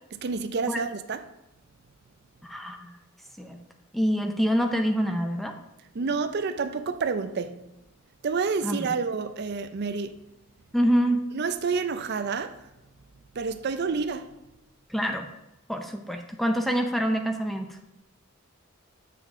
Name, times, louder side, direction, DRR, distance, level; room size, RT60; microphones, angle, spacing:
voice 1, 0.1-1.2 5.9-7.6 8.2-10.2 11.3-12.6 13.4-14.3, right 5 dB, 55° right, 0.5 m, -29 dB
voice 2, 2.4-2.9 3.4-3.6 3.9-5.5 8.6-8.9 10.7-11.2 14.9-15.3 15.7-17.7, equal, ahead, 0.6 m, -26 dB
7.5 x 6.7 x 3.6 m
head